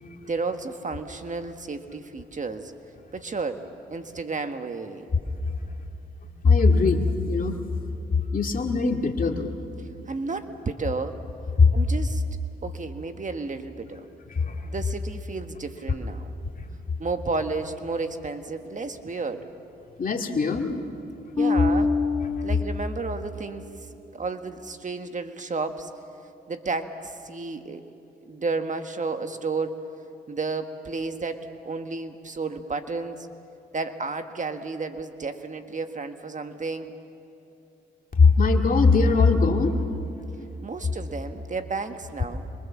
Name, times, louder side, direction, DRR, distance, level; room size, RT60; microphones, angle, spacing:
voice 1, 0.3-2.7 3.1-5.1 9.8-11.2 11.7-12.2 12.6-14.1 14.6-16.3 17.0-19.5 21.4-21.9 22.4-25.9 26.5-27.8 28.2-29.8 30.3-33.3 33.7-36.9 40.6-42.4, right 3 dB, 40° right, 7 dB, 1.6 m, -32 dB
voice 2, 6.4-7.6 8.3-9.5 11.6-11.7 14.4-14.6 20.0-20.8 38.2-39.8, left 4 dB, 45° left, 3 dB, 2.3 m, -20 dB
Bass guitar, 21.4-24.0, left 4 dB, 20° left, 4.0 m, -27 dB
26.5 x 23.0 x 7.3 m, 2.8 s
supercardioid pair, 60°, 20 cm